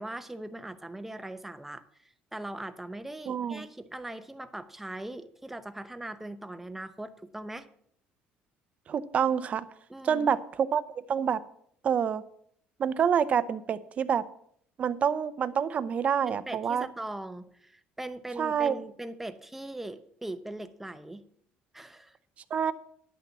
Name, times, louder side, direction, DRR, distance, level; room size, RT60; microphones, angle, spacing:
voice 1, 0.0-7.7 9.9-10.3 16.3-21.2 21.7-22.2, right 1 dB, 5° right, 10 dB, 0.8 m, -40 dB
voice 2, 3.3-3.7 8.9-9.7 10.0-11.4 11.8-12.2 12.8-14.2 14.8-16.9 18.4-18.8 22.5-22.7, right 7 dB, 40° right, 14 dB, 0.7 m, -27 dB
10.5 x 6.8 x 7.3 m, 0.66 s
cardioid pair, 130°, 3 cm